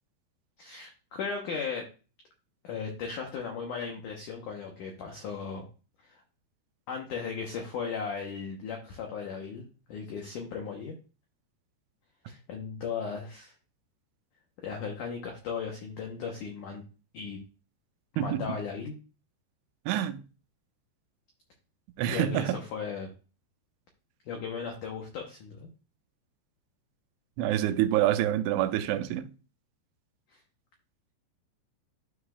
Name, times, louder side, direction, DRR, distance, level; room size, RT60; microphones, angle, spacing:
voice 1, 0.6-1.8 2.6-5.7 6.0-6.2 6.9-11.0 12.3-13.5 14.6-16.8 17.1-17.4 18.1-19.0 22.1-23.1 24.2-25.7 30.3-30.4, left 6 dB, 90° left, 1.8 m, -36 dB
voice 2, 18.2-18.5 19.9-20.2 22.0-22.6 27.4-29.3, right 12 dB, 90° right, 3.0 m, -27 dB
12.5 x 4.9 x 2.4 m
omnidirectional pair, 5.2 m